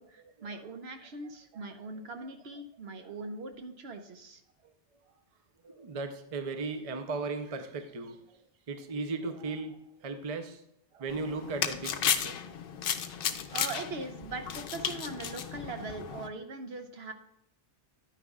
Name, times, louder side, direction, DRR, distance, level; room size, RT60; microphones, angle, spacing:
voice 1, 0.0-4.4 13.5-17.1, right 3 dB, 65° right, 6 dB, 1.0 m, -41 dB
voice 2, 5.6-8.4 8.7-10.6 10.9-12.4 13.4-13.5, right 3 dB, 35° right, 7 dB, 0.7 m, -37 dB
sound 1, 11.1-16.3, left 8 dB, 65° left, 0.8 m, -34 dB
10.0 x 9.1 x 2.4 m, 0.76 s
omnidirectional pair, 1.2 m